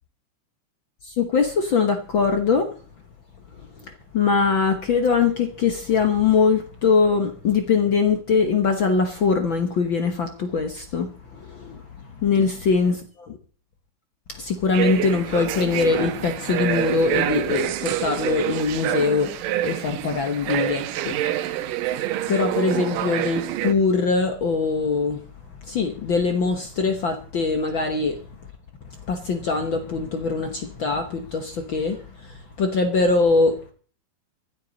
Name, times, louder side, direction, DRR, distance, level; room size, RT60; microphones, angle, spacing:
voice 1, 1.0-2.7 3.6-13.4 14.3-19.3 19.6-21.2 22.3-25.2 25.6-28.2 29.0-33.7, left 5 dB, 65° left, 1.2 m, -22 dB
sound 1, 14.7-23.7, right 13 dB, 90° right, 2.5 m, -27 dB
25.0 x 8.6 x 4.0 m
omnidirectional pair, 3.8 m